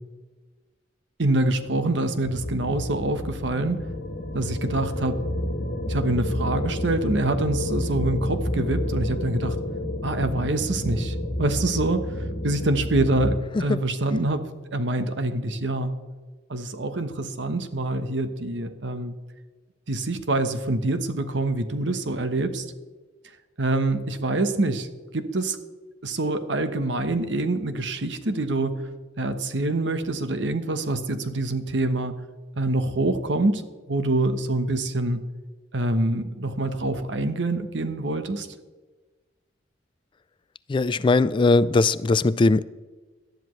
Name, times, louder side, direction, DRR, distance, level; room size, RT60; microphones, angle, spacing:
voice 1, 1.2-3.8 4.3-5.3 5.9-9.6 10.0-12.1 12.4-15.9 16.5-19.1 19.9-22.6 23.6-25.6 26.0-28.9 29.2-32.1 32.5-33.6 33.9-35.2 35.7-38.5, right 2 dB, 70° right, 1.1 m, -25 dB
sound 1, 2.2-13.4, left 1 dB, 60° left, 1.4 m, -29 dB
voice 2, 40.7-42.6, left 3 dB, 25° left, 0.3 m, -19 dB
18.0 x 12.0 x 3.2 m
head